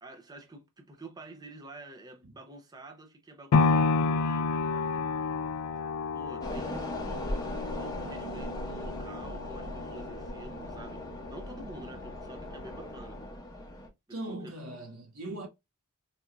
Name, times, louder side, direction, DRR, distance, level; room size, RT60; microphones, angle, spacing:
voice 1, 0.0-5.4 6.1-13.2 14.3-14.5, right 1 dB, 20° right, 0.5 m, -49 dB
sound 1, 3.5-11.6 12.1-12.2, left 4 dB, 80° left, 0.3 m, -30 dB
sound 2, 6.4-13.9, left 1 dB, 15° left, 0.9 m, -39 dB
voice 2, 14.1-15.5, right 1 dB, 85° right, 1.9 m, -39 dB
4.1 x 2.5 x 2.3 m
head